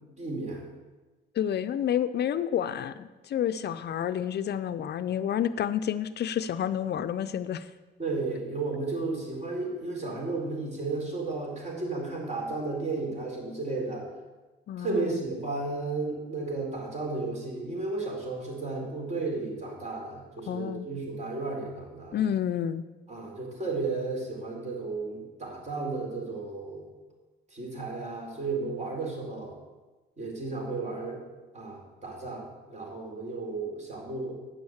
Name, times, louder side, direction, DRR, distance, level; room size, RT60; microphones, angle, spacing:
voice 1, 0.2-0.6 8.0-14.1 14.8-22.2 23.1-26.9 27.5-29.5 30.2-31.2 31.5-34.4, right 3 dB, 35° right, -1 dB, 4.5 m, -33 dB
voice 2, 1.3-7.7 14.7-15.2 20.5-20.9 22.1-22.8, left 9 dB, 55° left, 13 dB, 0.5 m, -29 dB
9.1 x 7.0 x 7.9 m, 1.2 s
cardioid pair, 90°, 20 cm